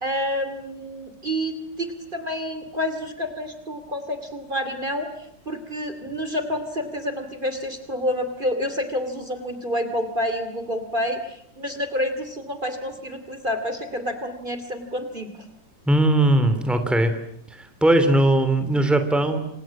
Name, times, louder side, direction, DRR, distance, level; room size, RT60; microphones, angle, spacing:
voice 1, 0.0-15.3, equal, 30° right, 8 dB, 2.8 m, -28 dB
voice 2, 15.9-17.1 17.6-19.4, right 1 dB, ahead, 9 dB, 3.0 m, -19 dB
29.0 x 27.0 x 7.5 m, 0.72 s
omnidirectional pair, 1.9 m